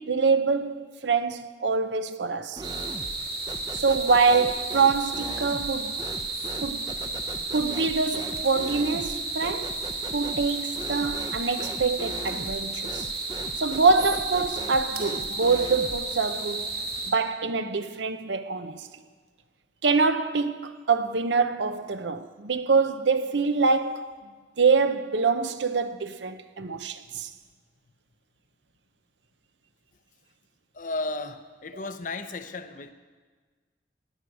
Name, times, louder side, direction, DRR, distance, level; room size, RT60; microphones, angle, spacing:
voice 1, 0.0-2.6 3.7-6.0 6.6-6.9 7.5-9.8 10.1-13.1 13.5-16.7 17.0-18.9 19.8-24.2 24.6-27.3, right 4 dB, 90° right, 0.8 m, -25 dB
sound 1, 2.6-3.2 3.5-16.1, right 1 dB, 25° right, 0.5 m, -39 dB
sound 2, 2.6-17.1, right 3 dB, 60° right, 2.4 m, -33 dB
voice 2, 30.7-32.9, left 2 dB, 45° left, 0.6 m, -35 dB
18.0 x 6.4 x 9.3 m
head